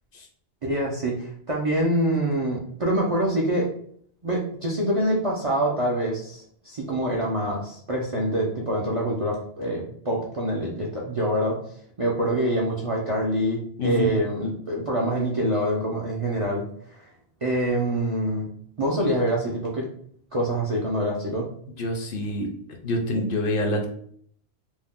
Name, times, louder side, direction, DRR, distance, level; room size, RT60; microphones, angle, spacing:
voice 1, 0.6-3.7 4.2-11.6 12.0-16.6 16.9-17.1 17.4-18.4 18.8-19.9 20.3-21.5, right 1 dB, 50° right, -3 dB, 0.4 m, -25 dB
voice 2, 13.8-14.2 21.8-22.5 22.8-23.9, left 1 dB, 65° left, 2 dB, 0.7 m, -26 dB
2.5 x 2.1 x 3.5 m, 0.62 s
omnidirectional pair, 1.1 m